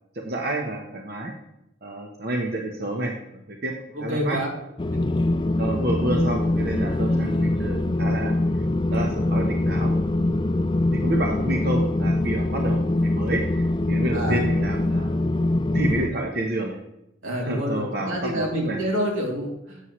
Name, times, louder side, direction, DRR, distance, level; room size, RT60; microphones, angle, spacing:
voice 1, 0.2-1.3 1.8-3.7 4.0-4.4 5.6-8.3 8.9-9.9 10.2-10.4 10.9-13.6 13.9-15.1 15.7-16.8 17.4-18.8, right 1 dB, 50° right, 2 dB, 1.0 m, -29 dB
voice 2, 3.9-4.5 4.9-5.0 7.1-7.7 14.1-14.4 17.2-19.9, equal, 90° right, -1 dB, 3.0 m, -28 dB
sound 1, 4.8-16.1, left 2 dB, 25° left, 0.3 m, -23 dB
12.0 x 8.1 x 3.2 m, 0.85 s
head